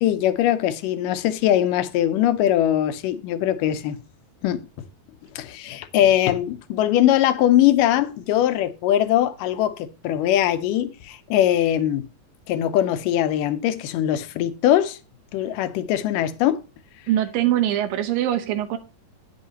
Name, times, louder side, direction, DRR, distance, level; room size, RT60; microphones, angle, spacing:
voice 1, 0.0-4.0 4.4-4.6 5.4-12.1 12.5-15.0 15.3-16.6, left 12 dB, 75° left, 2.2 m, -21 dB
voice 2, 17.1-18.8, right 12 dB, 80° right, 2.6 m, -22 dB
9.2 x 8.5 x 2.8 m
omnidirectional pair, 4.0 m